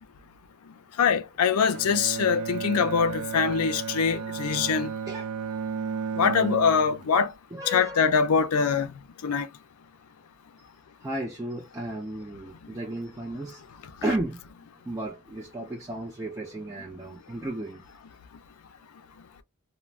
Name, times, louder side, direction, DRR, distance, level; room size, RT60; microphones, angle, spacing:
voice 1, 1.0-4.9 6.2-7.3 7.7-8.9 9.2-9.5, left 6 dB, 85° left, 0.4 m, -23 dB
Bowed string instrument, 1.7-7.2, right 6 dB, 85° right, 0.4 m, -33 dB
voice 2, 7.5-8.0 11.0-13.6 14.0-14.4 14.9-17.8, right 1 dB, 15° right, 0.4 m, -33 dB
2.4 x 2.1 x 3.2 m
head